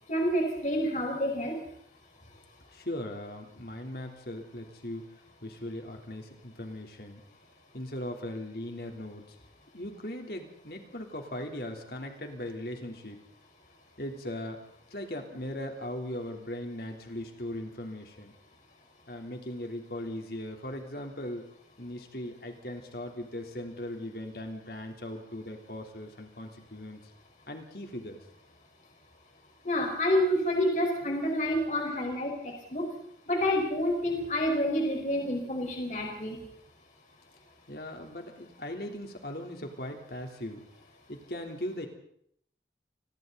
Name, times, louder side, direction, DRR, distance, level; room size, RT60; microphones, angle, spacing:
voice 1, 0.1-1.6 29.6-32.8 33.3-36.4, left 1 dB, 45° left, 1 dB, 4.9 m, -28 dB
voice 2, 2.7-5.1 5.4-7.2 7.7-9.4 9.7-13.2 14.0-14.6 14.9-18.3 19.1-21.5 21.8-27.0 27.5-28.2 31.0-31.1 37.7-40.6 41.1-41.9, left 1 dB, 60° left, 3 dB, 3.5 m, -39 dB
29.5 x 22.0 x 4.1 m, 0.67 s
head